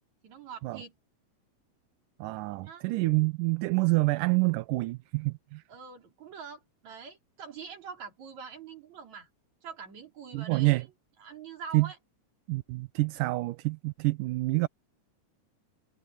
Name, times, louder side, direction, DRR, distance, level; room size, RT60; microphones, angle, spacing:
voice 1, 0.2-1.0 2.6-2.8 5.7-9.3 9.6-10.9 11.2-12.0, right 6 dB, 60° right, 5.2 m, -44 dB
voice 2, 2.2-5.6 10.3-10.8 11.7-11.9 12.5-14.7, right 23 dB, 80° right, 2.3 m, -27 dB
omnidirectional pair, 3.8 m